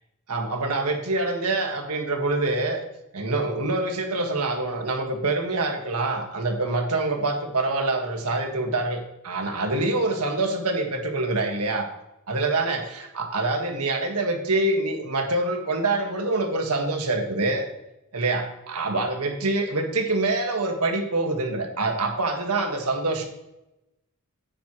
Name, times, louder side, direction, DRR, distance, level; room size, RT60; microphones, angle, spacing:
voice 1, 0.3-2.8 3.1-11.9 12.3-17.7 18.1-23.2, right 2 dB, 90° right, 4 dB, 1.6 m, -25 dB
9.8 x 9.3 x 3.0 m, 0.91 s
head